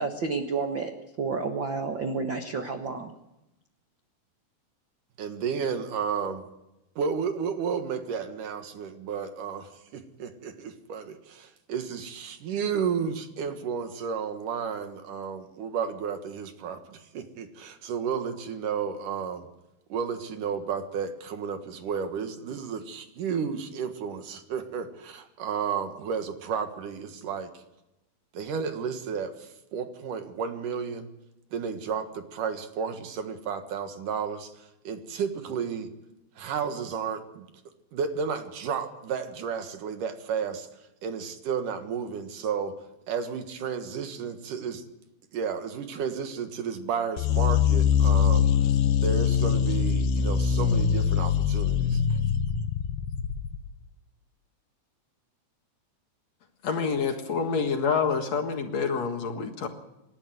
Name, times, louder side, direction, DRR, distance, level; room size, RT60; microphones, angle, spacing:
voice 1, 0.0-3.1, right 4 dB, 50° right, 5 dB, 1.4 m, -30 dB
voice 2, 5.2-6.4 7.0-19.5 19.9-27.5 28.3-31.1 31.5-34.5 34.8-35.9 36.4-37.5 37.9-40.7 41.0-42.7 43.1-44.8 45.3-48.5 49.0-52.0, right 6 dB, 70° right, 7 dB, 3.0 m, -32 dB
sound 1, 47.2-53.7, left 7 dB, 75° left, 2.7 m, -23 dB
voice 3, 56.6-59.7, left 5 dB, 55° left, 4 dB, 2.6 m, -27 dB
27.0 x 12.0 x 9.3 m, 0.92 s
omnidirectional pair, 4.0 m